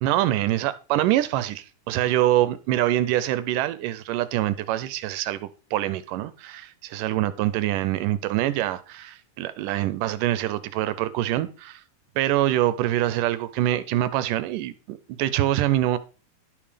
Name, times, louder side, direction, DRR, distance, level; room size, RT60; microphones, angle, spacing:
voice 1, 0.0-11.8 12.2-16.0, right 14 dB, 75° right, 2.0 m, -25 dB
11.5 x 5.4 x 5.1 m
omnidirectional pair, 4.3 m